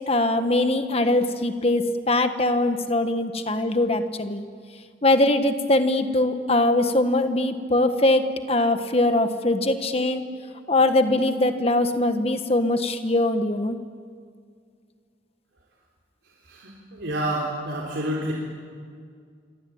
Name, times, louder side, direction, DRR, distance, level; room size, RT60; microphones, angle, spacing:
voice 1, 0.1-4.4 5.0-10.2 10.7-13.8, left 2 dB, 30° left, 8 dB, 1.5 m, -22 dB
voice 2, 16.4-18.3, right 1 dB, 70° right, -3 dB, 4.0 m, -29 dB
27.5 x 24.5 x 8.8 m, 2.2 s
head